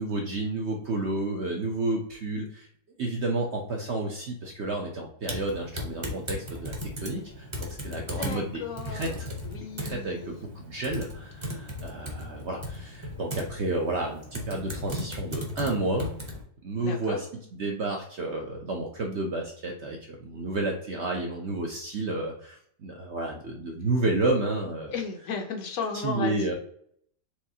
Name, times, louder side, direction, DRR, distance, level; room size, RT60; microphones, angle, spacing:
voice 1, 0.0-2.7 3.0-9.3 9.8-16.1 16.6-17.2 17.6-24.9 26.0-26.5, right 2 dB, 60° right, 1 dB, 0.7 m, -31 dB
Typing, 5.2-16.4, left 1 dB, 25° right, 0.7 m, -37 dB
voice 2, 8.0-10.3 16.8-17.2 24.9-26.5, left 5 dB, 65° left, 4 dB, 1.0 m, -35 dB
4.6 x 3.3 x 2.7 m, 0.63 s
omnidirectional pair, 1.8 m